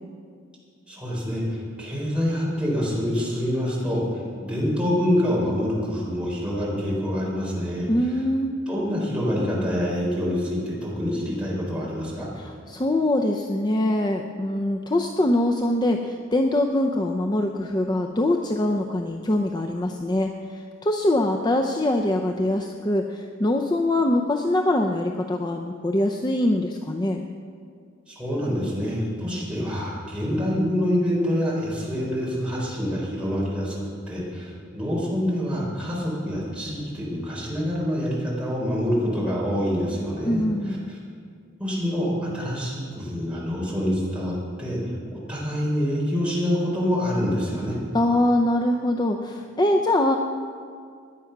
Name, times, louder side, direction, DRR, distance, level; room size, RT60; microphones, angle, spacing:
voice 1, 0.9-4.0 4.4-7.9 8.7-12.3 28.1-33.7 34.1-40.4 40.9-41.0 41.6-44.8 45.1-47.8, equal, 5° right, -6 dB, 4.2 m, -26 dB
voice 2, 7.9-8.5 12.4-27.3 40.2-40.9 47.9-50.2, left 1 dB, 20° left, 3 dB, 0.6 m, -23 dB
17.0 x 10.5 x 5.9 m, 2.3 s
head